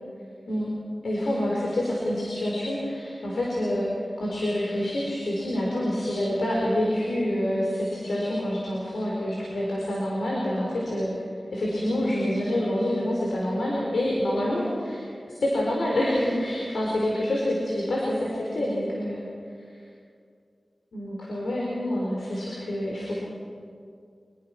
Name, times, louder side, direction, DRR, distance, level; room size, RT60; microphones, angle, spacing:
voice 1, 1.0-3.9 4.2-11.1 11.5-15.0 15.4-17.4 17.7-19.3 20.9-23.1, left 1 dB, 90° left, -4 dB, 4.7 m, -27 dB
25.5 x 21.5 x 6.1 m, 2.3 s
cardioid pair, 50°, 0 cm